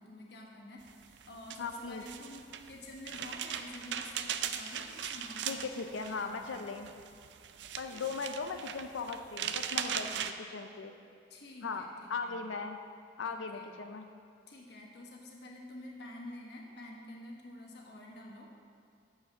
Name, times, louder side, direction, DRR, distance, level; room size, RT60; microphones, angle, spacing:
voice 1, 0.0-5.7 6.0-6.6 7.9-8.1 9.7-10.3 11.3-12.4 13.2-13.7 14.5-18.5, left 1 dB, 60° left, -1 dB, 1.3 m, -49 dB
sound 1, 0.9-10.3, right 8 dB, 65° right, 0.4 m, -39 dB
voice 2, 1.6-2.0 5.5-6.9 7.8-10.1 10.5-10.9 11.6-11.8 12.1-12.8 13.2-14.1, left 4 dB, 90° left, 6 dB, 0.5 m, -38 dB
7.3 x 6.1 x 6.5 m, 2.4 s
head